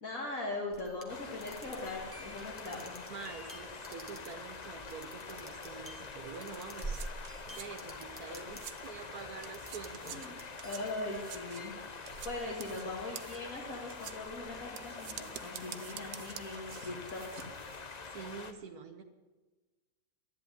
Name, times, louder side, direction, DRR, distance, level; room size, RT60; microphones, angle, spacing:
voice 1, 0.0-3.0 10.0-10.4 10.6-11.8 12.2-17.2, left 2 dB, 55° left, -3 dB, 2.6 m, -40 dB
sound 1, 0.7-8.8 9.2-10.1 10.4-12.8, right 1 dB, 10° left, 1.7 m, -48 dB
sound 2, 1.1-18.5, left 4 dB, 35° left, 0.8 m, -46 dB
voice 2, 3.1-7.1 7.5-10.2 18.1-19.0, right 5 dB, 70° right, 6 dB, 1.5 m, -46 dB
sound 3, 6.3-9.1 9.4-17.8, right 10 dB, 90° right, 1.4 m, -49 dB
11.0 x 11.0 x 9.7 m, 1.2 s
omnidirectional pair, 1.7 m